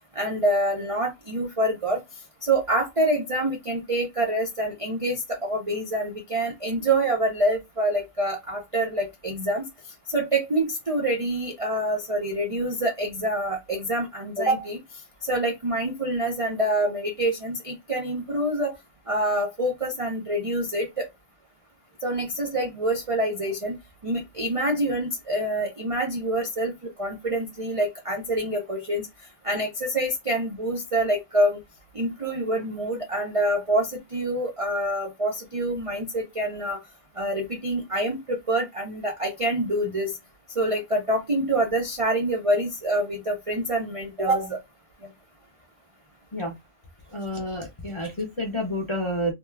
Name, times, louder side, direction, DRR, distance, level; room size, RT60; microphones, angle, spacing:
voice 1, 0.1-2.0 2.4-9.7 10.1-14.8 15.2-18.8 19.1-21.1 22.0-26.7 27.0-29.1 29.4-31.6 31.9-36.8 37.2-40.2 40.5-44.6 45.0-45.1, right 1 dB, 60° right, 0.3 m, -26 dB
voice 2, 47.1-49.3, equal, 40° left, 0.4 m, -29 dB
2.7 x 2.2 x 3.3 m
omnidirectional pair, 1.6 m